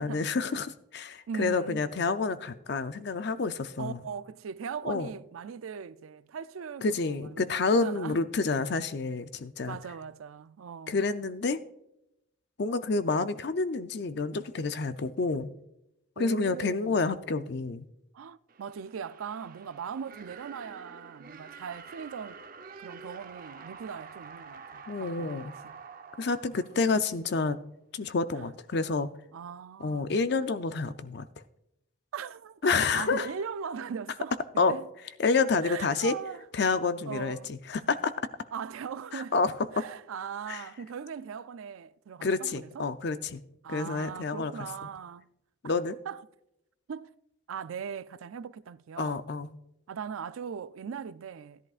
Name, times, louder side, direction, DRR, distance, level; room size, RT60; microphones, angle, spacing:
voice 1, 0.0-4.0 4.8-5.1 6.8-9.8 10.9-11.6 12.6-15.5 16.2-17.9 24.9-25.5 26.2-27.6 27.9-29.1 29.8-31.2 32.6-33.3 34.6-34.7 35.2-36.1 36.5-38.1 39.1-39.8 40.5-40.6 42.2-43.4 43.7-44.5 45.6-46.0 49.0-49.5, left 4 dB, 55° left, 0.5 m, -29 dB
voice 2, 1.3-1.8 3.8-8.2 9.6-11.0 16.2-17.1 18.1-22.4 22.8-25.7 28.3-28.4 29.3-30.1 32.1-34.9 35.6-36.5 37.1-37.5 38.5-39.4 39.7-42.9 43.6-45.3 46.1-46.2 46.9-47.1 47.5-49.2 49.9-51.6, right 7 dB, 90° right, 0.4 m, -40 dB
sound 1, 18.5-27.4, right 5 dB, 45° right, 0.7 m, -48 dB
16.0 x 11.0 x 2.4 m
head